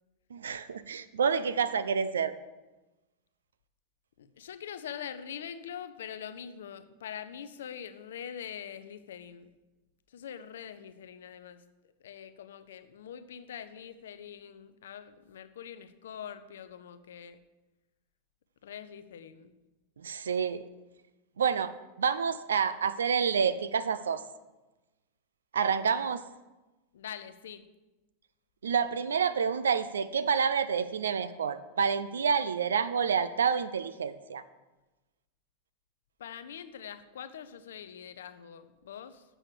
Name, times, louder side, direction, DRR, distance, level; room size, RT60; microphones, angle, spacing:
voice 1, 0.3-2.4 20.0-20.6 21.4-21.7 22.0-24.2 25.5-26.2 28.6-34.4, right 6 dB, 80° right, 13 dB, 0.5 m, -28 dB
voice 2, 4.2-9.5 10.1-11.6 12.0-17.4 18.6-19.6 26.9-27.6 36.2-39.2, left 8 dB, 70° left, 11 dB, 0.6 m, -44 dB
7.6 x 6.2 x 6.5 m, 1.1 s
hypercardioid pair, 95°, 0 cm